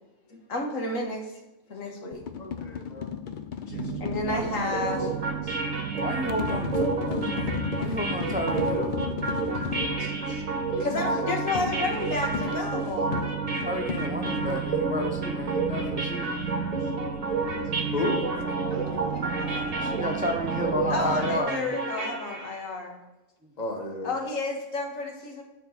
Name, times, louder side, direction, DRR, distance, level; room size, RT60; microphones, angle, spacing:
voice 1, 0.3-1.3 1.7-2.2 3.7-5.2 5.4-5.6 9.6-13.2 18.7-19.9 20.9-23.0 24.0-25.4, left 3 dB, 80° left, 1 dB, 1.8 m, -32 dB
sound 1, 2.1-5.0 6.3-10.0 11.6-14.5, left 8 dB, 60° left, 0.5 m, -34 dB
voice 2, 2.4-3.1 4.6-5.2 10.3-10.4 17.8-18.2 23.6-24.1, left 2 dB, 35° left, 2 dB, 1.2 m, -33 dB
sound 2, 3.7-21.4, right 7 dB, 75° right, 1.0 m, -34 dB
voice 3, 4.2-4.5 5.9-9.0 13.6-16.5 19.8-21.8, equal, 10° right, 4 dB, 0.4 m, -32 dB
sound 3, 4.7-22.6, right 3 dB, 30° right, 1.1 m, -31 dB
6.9 x 4.5 x 6.5 m, 0.98 s
omnidirectional pair, 1.4 m